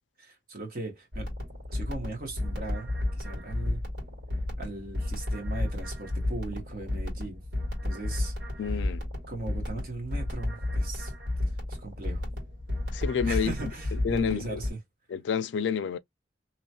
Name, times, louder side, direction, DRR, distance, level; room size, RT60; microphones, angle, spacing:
voice 1, 0.2-1.3 1.7-3.8 4.6-7.4 7.8-8.3 9.3-11.1 11.8-12.3 13.2-14.8, right 2 dB, 55° right, 1.2 m, -38 dB
sound 1, 1.1-14.7, left 1 dB, 70° right, 1.8 m, -32 dB
voice 2, 8.6-9.1 12.9-13.7 14.0-14.6 15.1-16.0, left 7 dB, 80° left, 0.3 m, -29 dB
2.9 x 2.2 x 2.8 m
head